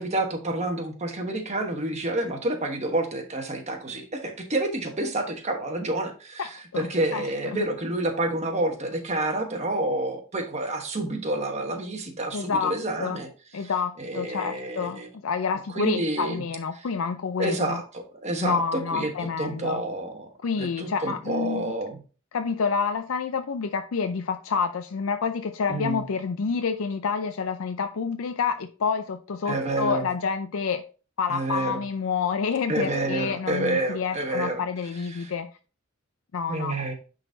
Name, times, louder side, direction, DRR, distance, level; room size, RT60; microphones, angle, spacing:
voice 1, 0.0-13.3 13.6-13.7 14.0-15.1 15.7-16.4 17.4-20.3 20.6-22.0 25.7-26.0 29.5-30.1 31.3-31.8 32.7-34.6 35.1-35.3 36.5-36.9, right 2 dB, 30° right, 4 dB, 1.2 m, -29 dB
voice 2, 6.4-7.7 12.3-13.2 13.5-17.8 18.4-19.8 20.4-21.7 22.3-30.8 31.2-35.5 36.3-36.8, left 5 dB, 75° left, 7 dB, 0.5 m, -28 dB
9.8 x 4.0 x 2.7 m, 0.35 s
head